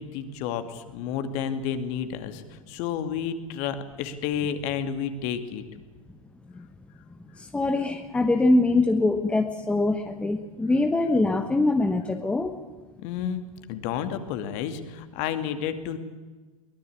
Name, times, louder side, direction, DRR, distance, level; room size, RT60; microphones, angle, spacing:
voice 1, 0.0-5.6 13.0-13.4 13.7-16.0, left 8 dB, 40° left, 10 dB, 2.3 m, -31 dB
voice 2, 7.4-12.6, left 2 dB, 5° left, 7 dB, 1.2 m, -23 dB
23.0 x 20.0 x 8.7 m, 1.3 s
figure-of-eight pair, 100°, 18 cm